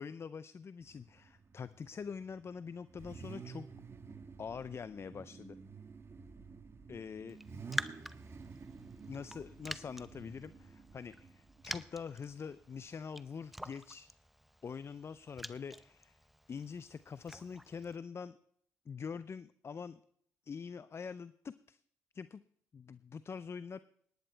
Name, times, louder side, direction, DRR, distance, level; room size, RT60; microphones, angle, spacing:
voice 1, 0.0-3.7 4.4-5.6 6.9-7.4 9.1-14.1 14.6-16.2 16.5-18.4 18.9-20.0 20.5-21.8 22.1-22.4 22.7-23.8, left 6 dB, 40° left, 16 dB, 0.5 m, -44 dB
Car / Idling / Accelerating revving vroom, 0.8-12.9, right 5 dB, 40° right, 1.5 m, -52 dB
Raindrop, 7.3-18.0, equal, ahead, 0.7 m, -47 dB
18.5 x 10.5 x 4.5 m, 0.67 s
supercardioid pair, 55°, 7 cm